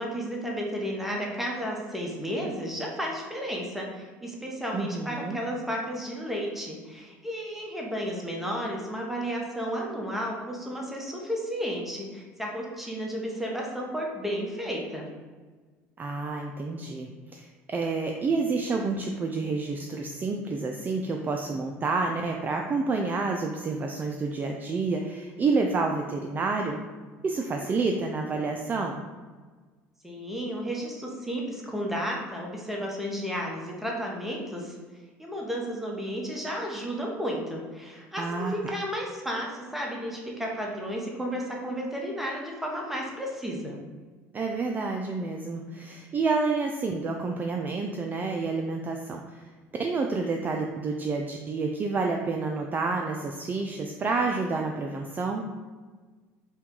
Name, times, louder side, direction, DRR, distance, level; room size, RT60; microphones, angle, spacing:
voice 1, 0.0-15.1 30.0-34.8 35.2-43.8, equal, 5° right, -1 dB, 0.9 m, -33 dB
voice 2, 4.7-5.4 16.0-26.8 27.2-29.0 38.2-38.7 44.3-49.5 49.8-55.5, right 4 dB, 30° right, 2 dB, 0.3 m, -29 dB
4.4 x 2.3 x 3.7 m, 1.4 s
supercardioid pair, 95°, 6 cm